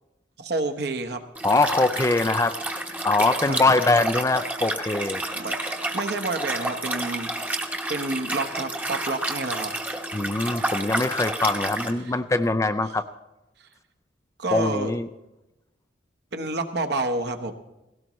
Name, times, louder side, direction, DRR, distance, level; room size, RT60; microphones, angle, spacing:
voice 1, 0.4-1.2 3.5-3.6 5.3-5.6 5.9-7.3 7.9-9.7 12.0-12.1 14.4-14.9 16.3-17.5, right 2 dB, 60° right, 7 dB, 1.1 m, -28 dB
Liquid, 1.3-11.9, right 1 dB, 10° right, 1.0 m, -30 dB
voice 2, 1.4-2.6 3.0-5.2 10.1-13.0 14.5-15.1, left 2 dB, 15° left, 10 dB, 0.4 m, -22 dB
17.5 x 17.0 x 3.1 m, 0.96 s
head